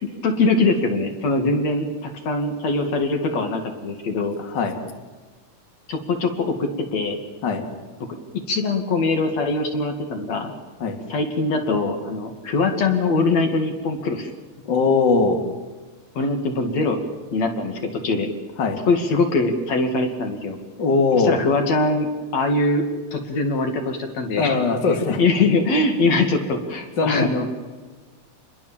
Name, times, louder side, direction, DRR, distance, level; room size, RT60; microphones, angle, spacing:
voice 1, 0.0-4.4 5.9-7.2 8.1-8.2 8.5-10.5 11.1-14.3 16.1-17.0 17.3-18.3 18.9-20.6 21.2-22.8 23.1-24.6 25.2-27.5, left 3 dB, 65° left, 5 dB, 3.3 m, -22 dB
voice 2, 4.4-4.8 7.4-7.6 10.8-11.0 14.7-15.4 18.6-18.8 20.8-21.4 24.3-25.2 27.0-27.3, left 4 dB, 40° left, 4 dB, 2.8 m, -20 dB
28.5 x 21.5 x 7.3 m, 1.3 s
omnidirectional pair, 3.4 m